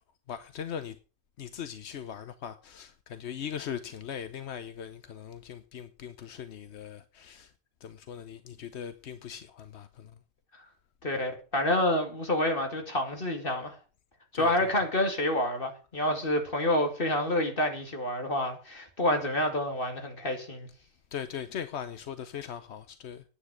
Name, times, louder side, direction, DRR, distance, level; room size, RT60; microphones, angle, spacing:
voice 1, 0.3-1.0 1.4-7.5 7.8-10.1 14.3-14.7 21.1-23.2, left 8 dB, 85° left, 1.1 m, -40 dB
voice 2, 11.0-13.8 14.3-20.7, left 1 dB, 55° left, 2.6 m, -28 dB
9.8 x 9.7 x 6.2 m
omnidirectional pair, 1.1 m